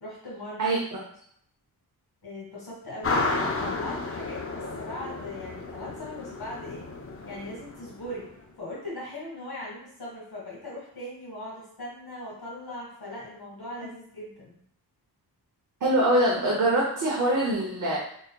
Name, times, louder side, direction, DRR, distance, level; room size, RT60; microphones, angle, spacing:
voice 1, 0.0-0.8 2.2-6.8 7.2-8.3 8.6-14.5, left 1 dB, 65° left, -6 dB, 1.6 m, -39 dB
voice 2, 0.6-1.0 15.8-18.0, right 1 dB, 50° right, -3 dB, 0.7 m, -24 dB
sound 1, 3.0-8.4, left 3 dB, 35° left, 0.5 m, -32 dB
4.0 x 3.9 x 2.2 m, 0.68 s
wide cardioid pair, 145°, 40 cm